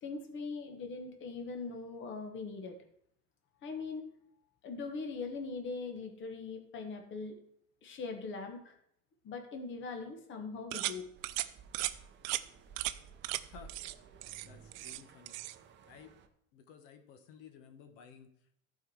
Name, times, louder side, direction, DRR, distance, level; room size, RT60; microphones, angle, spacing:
voice 1, 0.0-2.8 3.6-4.1 4.6-7.4 7.8-8.7 9.2-11.1, left 4 dB, 30° left, 5 dB, 1.2 m, -41 dB
sound 1, 10.7-11.0 11.2-11.5 11.7-11.9 12.2-12.4 12.8-12.9 13.2-13.4 13.7-13.9 14.2-15.0 15.3-15.5, right 17 dB, 80° right, 0.6 m, -36 dB
sound 2, 11.1-16.3, right 6 dB, 30° right, 0.8 m, -56 dB
voice 2, 14.4-15.4 15.9-16.1 16.5-18.5, left 7 dB, 65° left, 7 dB, 1.3 m, -55 dB
14.0 x 4.8 x 4.7 m, 0.69 s
cardioid pair, 155°, 39 cm